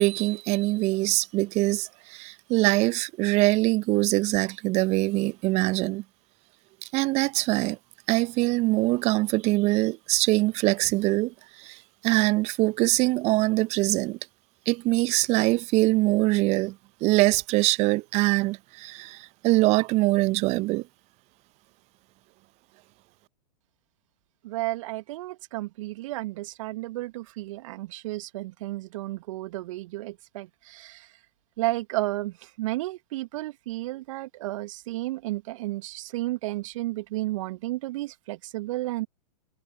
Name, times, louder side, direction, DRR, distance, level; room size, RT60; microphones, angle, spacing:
voice 1, 0.0-6.0 6.9-7.8 8.1-14.2 14.7-16.8 17.0-20.9, right 21 dB, 30° right, 0.9 m, -23 dB
voice 2, 24.4-31.1 31.6-39.1, right 18 dB, 50° right, 1.8 m, -32 dB
figure-of-eight pair, 105°, 21 cm